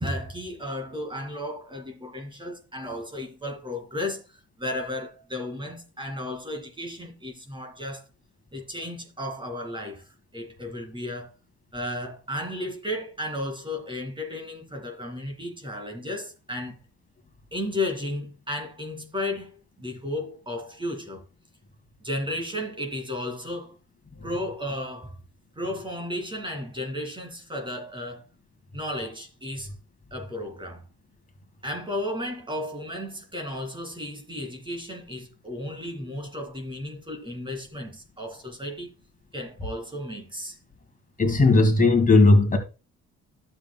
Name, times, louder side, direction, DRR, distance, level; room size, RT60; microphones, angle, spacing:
voice 1, 0.0-4.2 4.6-8.0 8.5-10.0 10.3-11.3 11.7-16.8 17.5-21.2 22.0-23.8 24.2-25.1 25.6-28.2 28.7-29.7 30.1-30.8 31.6-38.9 39.3-40.6, left 1 dB, 15° right, 2.3 m, -34 dB
voice 2, 41.2-42.6, left 3 dB, 25° left, 2.2 m, -17 dB
11.5 x 7.5 x 2.3 m
cardioid pair, 90°, 30 cm